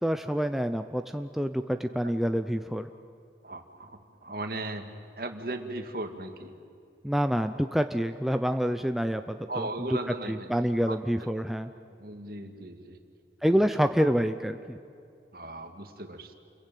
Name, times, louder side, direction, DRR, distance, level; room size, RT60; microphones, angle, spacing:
voice 1, 0.0-2.9 7.0-9.7 10.3-11.7 13.4-14.8, equal, ahead, 7 dB, 0.6 m, -27 dB
voice 2, 3.4-6.6 9.5-11.0 12.0-13.0 15.3-16.3, right 2 dB, 55° right, 7 dB, 2.1 m, -37 dB
29.0 x 22.5 x 9.2 m, 2.4 s
head